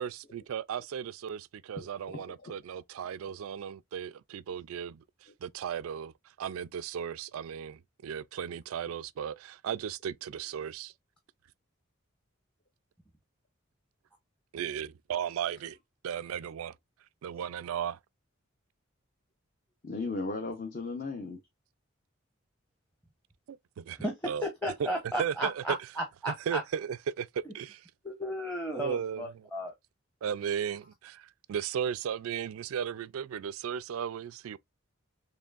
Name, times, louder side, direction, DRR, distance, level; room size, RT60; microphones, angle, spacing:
voice 1, 0.0-6.1 6.4-10.9 14.5-15.8 16.0-16.8 17.2-18.0 23.5-24.0 24.3-24.5 24.8-24.9 25.2-25.8 26.5-27.9 28.7-29.5 30.2-34.6, right 8 dB, 80° right, 0.3 m, -35 dB
voice 2, 1.8-2.5 19.8-21.4, left 3 dB, 40° left, 0.7 m, -36 dB
voice 3, 24.4-26.6 28.0-29.7, equal, 5° left, 0.8 m, -34 dB
4.3 x 3.2 x 2.4 m
head